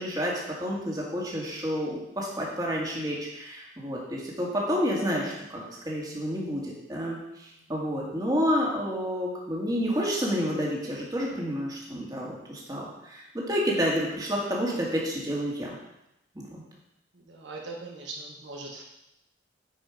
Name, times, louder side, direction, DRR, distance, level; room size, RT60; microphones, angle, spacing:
voice 1, 0.0-15.8 16.4-16.6, equal, 20° right, -4 dB, 2.1 m, -30 dB
voice 2, 17.3-18.8, right 3 dB, 75° right, -1 dB, 1.5 m, -40 dB
9.7 x 5.2 x 5.1 m, 0.87 s
head